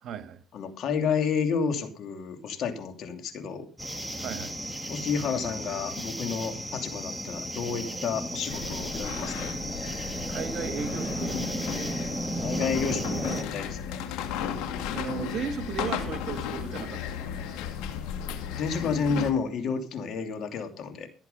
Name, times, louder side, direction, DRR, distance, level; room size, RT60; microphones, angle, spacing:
voice 1, 0.0-0.4 4.2-4.6 10.3-11.8 14.9-17.5, right 7 dB, 60° right, 2.0 m, -36 dB
voice 2, 0.5-3.7 4.9-9.5 12.4-14.0 18.5-21.1, left 6 dB, 60° left, 2.8 m, -30 dB
sound 1, 3.8-13.4, right 1 dB, 5° right, 1.7 m, -34 dB
sound 2, 8.5-19.3, left 8 dB, 90° left, 2.3 m, -35 dB
15.5 x 8.2 x 5.5 m
cardioid pair, 95°, 0 cm